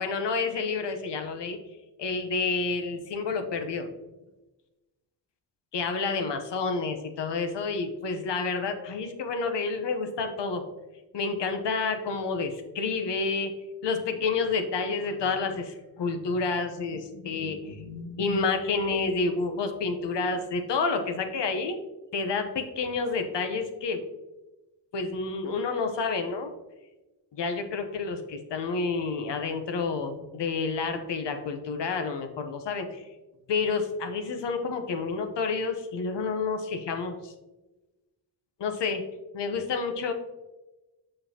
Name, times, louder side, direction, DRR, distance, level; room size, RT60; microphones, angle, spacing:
voice 1, 0.0-1.6 2.0-3.9 5.7-10.6 11.1-13.6 13.8-21.8 22.1-24.0 24.9-26.5 27.3-33.1 33.5-37.3 38.6-39.0 39.3-40.1, left 4 dB, 65° left, 6 dB, 0.9 m, -29 dB
6.7 x 5.4 x 2.8 m, 1.1 s
cardioid pair, 80°, 45 cm